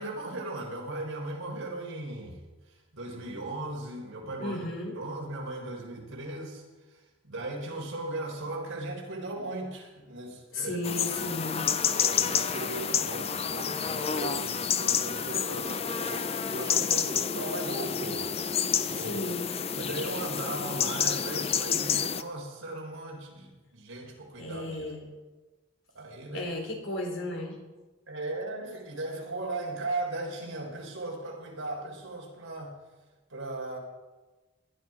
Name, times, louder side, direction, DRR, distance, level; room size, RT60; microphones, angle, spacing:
voice 1, 0.0-2.4 2.7-4.6 4.9-6.6 6.9-10.8 11.8-18.3 18.7-19.2 19.7-24.9 25.9-26.5 28.1-32.7 33.3-33.8, right 2 dB, 70° right, -1 dB, 4.0 m, -37 dB
voice 2, 4.4-5.0 10.5-11.7 18.9-19.5 24.4-25.2 26.3-27.6, left 2 dB, 65° left, 2 dB, 3.4 m, -34 dB
sound 1, 10.8-22.2, left 7 dB, 30° left, 0.5 m, -29 dB
19.5 x 11.0 x 4.8 m, 1.2 s
head